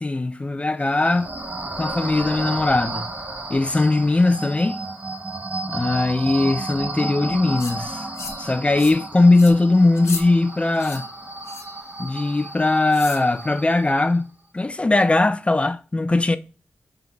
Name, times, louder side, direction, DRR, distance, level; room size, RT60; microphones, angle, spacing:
voice 1, 0.0-1.3 1.7-3.1 3.5-4.8 5.7-8.0 8.4-11.1 12.0-16.4, left 2 dB, 25° left, 0.3 m, -20 dB
sound 1, 0.8-14.2, right 2 dB, 35° right, 0.8 m, -33 dB
sound 2, 7.6-7.8 8.1-8.5 8.8-9.0 9.3-9.5 10.0-10.2 10.7-11.0 11.5-11.8 12.9-13.2, left 4 dB, 75° left, 0.6 m, -34 dB
5.6 x 3.8 x 2.3 m
cardioid pair, 50°, 5 cm